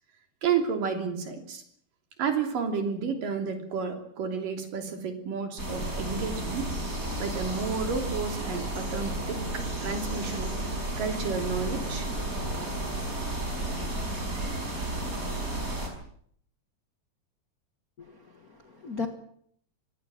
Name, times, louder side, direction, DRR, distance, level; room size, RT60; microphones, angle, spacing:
voice 1, 0.4-1.6 2.2-6.7 7.2-10.6 11.0-12.1, right 6 dB, 80° right, 5 dB, 4.7 m, -31 dB
sound 1, 5.6-15.9, right 1 dB, 25° right, 5.7 m, -32 dB
voice 2, 18.0-19.1, left 5 dB, 45° left, 5 dB, 1.2 m, -37 dB
25.0 x 18.0 x 7.6 m, 0.65 s
omnidirectional pair, 3.8 m